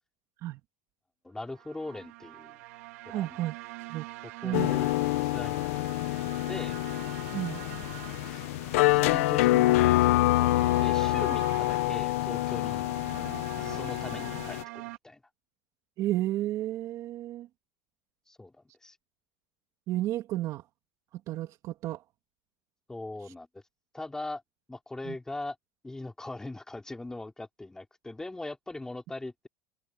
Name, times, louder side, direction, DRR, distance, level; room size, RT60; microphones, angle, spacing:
voice 1, 1.2-2.6 3.0-3.4 4.4-4.9 5.2-5.7 6.2-6.8 8.3-8.4 8.9-12.9 13.6-15.2 18.3-18.5 18.8-19.0 22.9-23.6 23.9-24.4 24.7-25.6 25.8-29.5, left 2 dB, 10° left, 4.4 m, -40 dB
sound 1, 1.5-15.0, right 20 dB, 80° right, 2.2 m, -45 dB
voice 2, 3.1-3.5 3.9-4.1 4.4-4.7 7.3-7.6 16.0-17.5 19.9-20.6 21.3-22.0 25.0-25.2, right 14 dB, 50° right, 2.1 m, -32 dB
sound 2, 4.5-14.6, left 17 dB, 85° left, 0.7 m, -26 dB
supercardioid pair, 130°, 7 cm